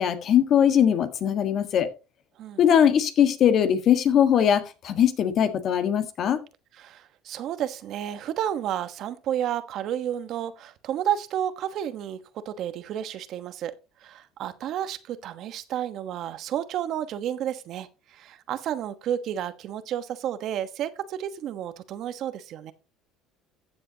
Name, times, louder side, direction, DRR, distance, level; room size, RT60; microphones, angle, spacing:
voice 1, 0.0-1.9 2.6-6.4, left 9 dB, 50° left, 1.6 m, -21 dB
voice 2, 6.8-12.2 12.4-13.7 14.0-22.7, right 10 dB, 55° right, 1.1 m, -31 dB
14.5 x 7.8 x 2.8 m
supercardioid pair, 100°, 0 cm